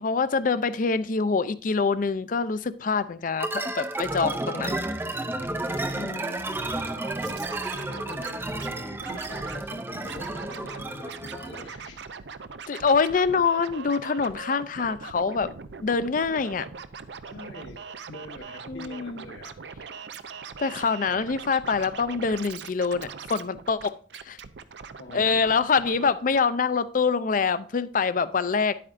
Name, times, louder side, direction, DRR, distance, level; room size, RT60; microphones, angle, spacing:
voice 1, 0.0-4.9 6.0-6.4 12.7-15.5 15.8-16.7 18.7-19.2 20.6-24.0 24.2-24.4 25.1-28.8, left 5 dB, 45° left, 0.5 m, -25 dB
sound 1, 3.4-11.7, right 2 dB, 15° right, 0.5 m, -32 dB
voice 2, 6.1-7.1 7.7-12.1 17.3-19.6 25.0-25.4, left 2 dB, 90° left, 1.3 m, -44 dB
Scratching (performance technique), 7.0-8.7 9.0-9.6 10.0-10.8 11.1-26.1 26.3-26.4, right 5 dB, 70° right, 0.6 m, -41 dB
10.0 x 8.5 x 2.5 m
head